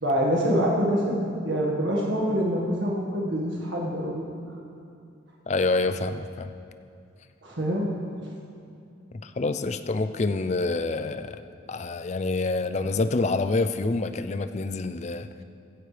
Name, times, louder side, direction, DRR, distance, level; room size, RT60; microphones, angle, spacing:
voice 1, 0.0-4.3 7.4-7.9 8.2-8.3, equal, 70° right, -3 dB, 1.6 m, -25 dB
voice 2, 5.5-6.5 9.2-11.4 11.7-15.4, left 3 dB, 35° left, 10 dB, 0.4 m, -27 dB
16.0 x 12.5 x 3.3 m, 2.6 s
head